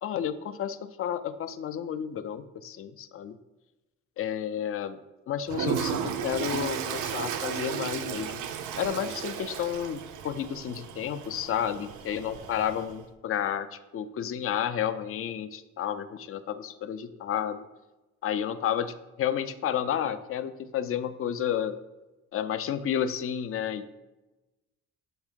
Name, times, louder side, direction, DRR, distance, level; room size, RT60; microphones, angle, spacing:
voice 1, 0.0-3.3 4.2-5.0 5.3-8.4 8.8-17.6 18.2-21.7 22.3-24.0, left 9 dB, 50° left, 12 dB, 0.4 m, -31 dB
Toilet flush, 5.5-13.0, right 8 dB, 80° right, 0.5 m, -34 dB
7.2 x 2.8 x 5.1 m, 1.1 s
cardioid pair, 90°, 30 cm